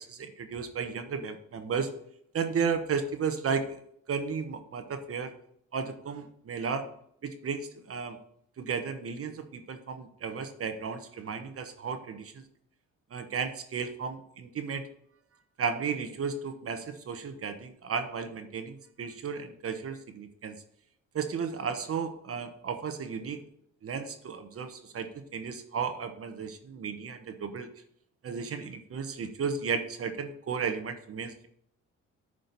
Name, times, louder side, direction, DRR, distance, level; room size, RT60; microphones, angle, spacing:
voice 1, 0.0-1.9 2.3-3.8 4.1-5.3 5.7-6.9 7.2-8.2 8.6-12.4 13.1-14.9 15.6-20.5 21.1-23.4 23.8-27.7 28.2-31.5, right 6 dB, 50° right, 8 dB, 1.2 m, -34 dB
10.5 x 5.0 x 4.1 m, 0.69 s
cardioid pair, 90°, 30 cm